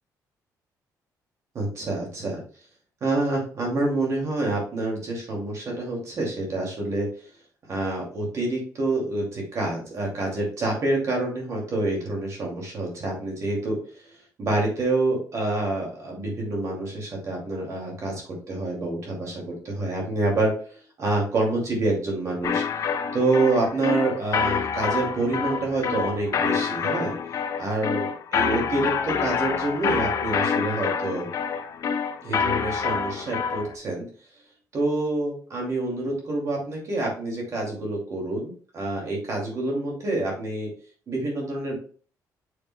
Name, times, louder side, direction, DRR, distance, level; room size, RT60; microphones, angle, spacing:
voice 1, 1.5-2.4 3.0-7.1 7.7-22.6 23.1-27.1 27.6-31.3 32.2-34.0 34.7-40.7 41.1-41.8, right 2 dB, 45° right, -1 dB, 2.6 m, -27 dB
sound 1, 22.4-33.7, left 6 dB, 50° left, 0.9 m, -27 dB
7.0 x 6.7 x 2.3 m, 0.42 s
cardioid pair, 125°, 7 cm